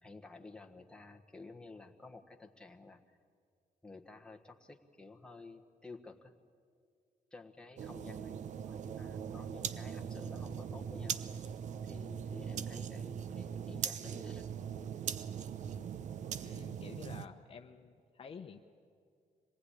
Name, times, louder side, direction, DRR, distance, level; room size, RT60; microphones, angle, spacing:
voice 1, 0.0-3.2 3.8-6.3 7.3-11.2 11.8-14.5, left 3 dB, 5° left, 3 dB, 1.4 m, -53 dB
sound 1, 7.8-17.3, right 8 dB, 55° right, 0.8 m, -40 dB
voice 2, 16.3-18.6, left 6 dB, 40° left, 6 dB, 1.0 m, -50 dB
25.5 x 19.5 x 9.9 m, 2.2 s
cardioid pair, 155°, 14 cm